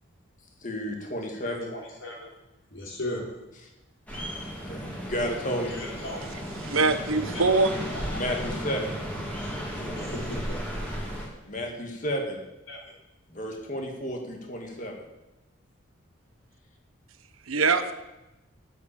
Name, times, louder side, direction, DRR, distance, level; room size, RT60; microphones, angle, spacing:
voice 1, 0.6-1.7 4.7-5.7 8.1-9.0 11.4-12.4 13.3-14.9, equal, 40° left, 2 dB, 1.9 m, -32 dB
voice 2, 1.3-2.2 2.7-3.3 5.7-6.3 7.2-7.5 7.9-8.0 10.0-10.6 11.0-11.1 11.5-11.6 12.7-12.8, left 1 dB, 70° left, -2 dB, 3.9 m, -37 dB
sound 1, 4.1-11.3, equal, 5° left, 2.6 m, -34 dB
voice 3, 6.3-7.7 17.5-17.9, right 4 dB, 90° right, 9 dB, 1.0 m, -23 dB
8.2 x 8.2 x 8.8 m, 0.98 s
head